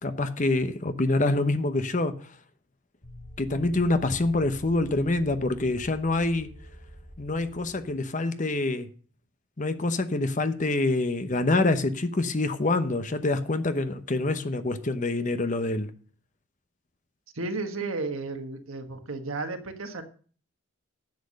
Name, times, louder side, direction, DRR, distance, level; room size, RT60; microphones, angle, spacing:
voice 1, 0.0-2.1 3.4-6.5 7.2-8.9 9.6-15.9, left 2 dB, 35° left, 0.9 m, -26 dB
sound 1, 3.0-8.0, equal, 65° left, 6.1 m, -46 dB
voice 2, 17.3-20.0, right 3 dB, 80° right, 1.5 m, -33 dB
10.5 x 7.7 x 6.4 m
head